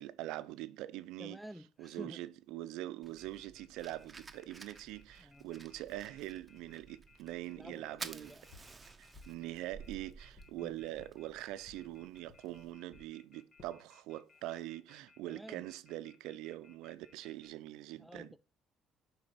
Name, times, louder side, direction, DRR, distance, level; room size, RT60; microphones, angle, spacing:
voice 1, 0.0-1.4 1.8-8.4 9.0-18.3, right 15 dB, 80° right, 0.5 m, -43 dB
voice 2, 1.2-2.2 5.2-5.5 7.5-8.5 10.6-10.7 15.3-15.7 18.0-18.4, equal, 5° left, 0.5 m, -51 dB
Fire, 3.0-12.7, right 4 dB, 25° right, 0.7 m, -53 dB
Telephone, 3.2-17.5, left 5 dB, 35° left, 1.6 m, -65 dB
sound 1, 8.5-8.8 9.1-9.4 9.8-10.6 11.0-11.1 11.6-11.9 12.3-12.4 12.9-13.1 13.6-13.8 14.3-14.7, left 4 dB, 60° left, 1.5 m, -58 dB
9.7 x 3.9 x 4.1 m
supercardioid pair, 80°, 0 cm